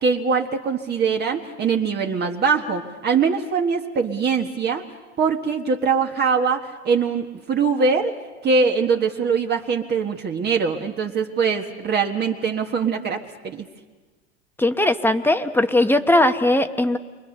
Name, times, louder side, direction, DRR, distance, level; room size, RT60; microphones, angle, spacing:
voice 1, 0.0-4.8 5.2-8.1 8.4-13.7, right 5 dB, 30° right, 3 dB, 1.6 m, -22 dB
voice 2, 14.6-17.0, left 1 dB, 5° left, 7 dB, 1.2 m, -19 dB
29.0 x 24.0 x 6.7 m, 1.3 s
hypercardioid pair, 115°, 35 cm